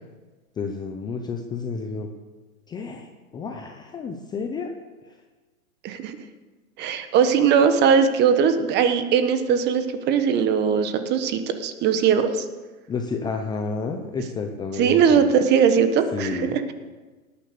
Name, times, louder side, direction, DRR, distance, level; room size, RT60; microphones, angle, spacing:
voice 1, 0.6-2.1 2.7-4.7 5.1-5.2 12.9-15.3 16.1-16.6, left 4 dB, 10° left, 4 dB, 0.7 m, -30 dB
voice 2, 5.8-6.2 6.8-12.4 14.8-16.7, right 7 dB, 25° right, 9 dB, 1.3 m, -20 dB
18.5 x 10.0 x 6.8 m, 1.3 s
hypercardioid pair, 145°, 43 cm